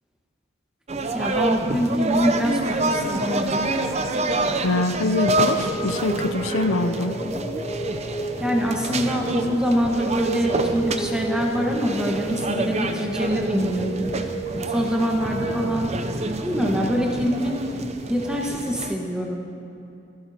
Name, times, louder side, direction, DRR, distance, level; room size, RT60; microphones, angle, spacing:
sound 1, 0.9-18.9, right 2 dB, 30° right, 0.6 m, -28 dB
voice 1, 1.1-3.6 8.4-14.1 14.5-15.9 16.2-17.5 18.1-19.5, equal, 5° right, -1 dB, 1.4 m, -24 dB
voice 2, 4.6-7.1, left 2 dB, 75° left, 9 dB, 0.6 m, -24 dB
sound 2, 5.7-15.8, right 2 dB, 10° left, 1.7 m, -31 dB
28.0 x 12.5 x 2.9 m, 2.6 s
head